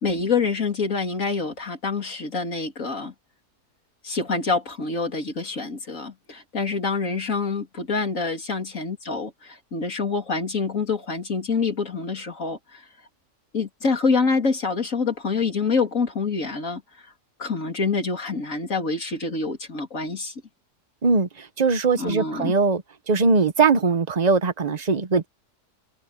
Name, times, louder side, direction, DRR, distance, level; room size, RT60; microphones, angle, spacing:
voice 1, 0.0-3.1 4.0-12.8 13.5-17.1 17.4-20.3 22.0-22.6, left 4 dB, 55° left, 3.6 m, -26 dB
voice 2, 21.0-22.8 23.1-25.3, right 4 dB, 30° right, 1.0 m, -21 dB
omnidirectional pair, 1.7 m